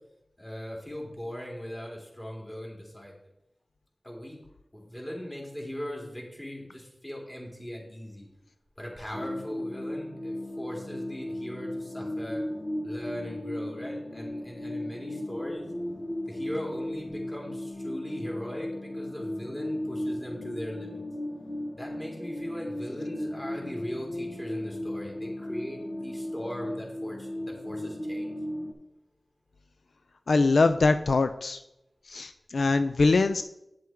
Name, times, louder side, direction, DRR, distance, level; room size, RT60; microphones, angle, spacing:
voice 1, 0.4-3.2 4.0-4.4 4.7-8.3 8.8-12.4 12.8-15.6 16.3-21.0 21.8-28.3, equal, 20° left, -2 dB, 2.9 m, -39 dB
sound 1, 9.1-28.7, left 1 dB, 55° left, 1.1 m, -36 dB
voice 2, 30.3-31.6 32.1-33.4, left 3 dB, 85° left, 9 dB, 0.3 m, -23 dB
8.8 x 7.5 x 3.6 m, 0.86 s
wide cardioid pair, 65°, 0 cm